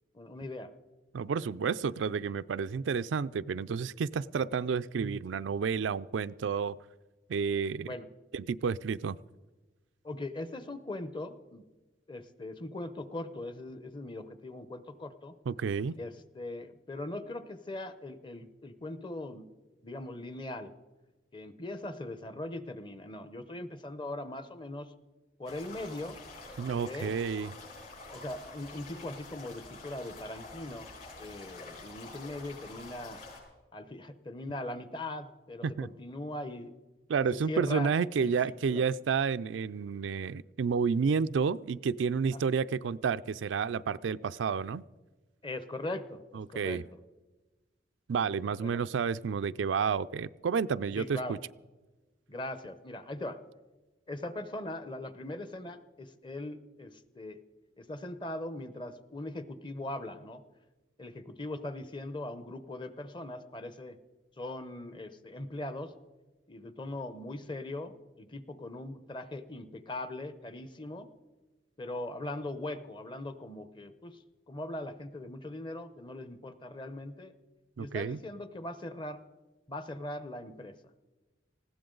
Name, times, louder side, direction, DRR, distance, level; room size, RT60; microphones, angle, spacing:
voice 1, 0.1-0.7 7.8-8.1 10.0-11.6 12.1-15.3 16.0-19.5 19.8-20.7 21.3-24.9 25.4-26.2 26.7-27.2 28.1-30.9 31.2-33.2 33.7-36.7 37.3-37.9 38.2-38.8 42.3-42.4 45.4-46.2 46.5-46.8 48.6-48.8 50.9-51.4 52.3-53.4 54.1-57.4 57.8-60.4 61.0-64.0 64.4-65.9 66.5-71.1 71.8-74.2 74.5-77.3 77.8-79.2 79.7-80.7, left 1 dB, 25° left, 12 dB, 0.8 m, -40 dB
voice 2, 1.1-6.8 7.3-7.9 8.3-9.2 15.5-15.9 26.6-27.5 35.6-35.9 37.1-44.8 46.3-46.8 48.1-51.4 77.8-78.2, right 6 dB, 85° right, 14 dB, 0.4 m, -30 dB
sound 1, 25.4-33.4, left 3 dB, 50° left, 6.4 m, -47 dB
20.0 x 15.5 x 3.9 m, 1.2 s
head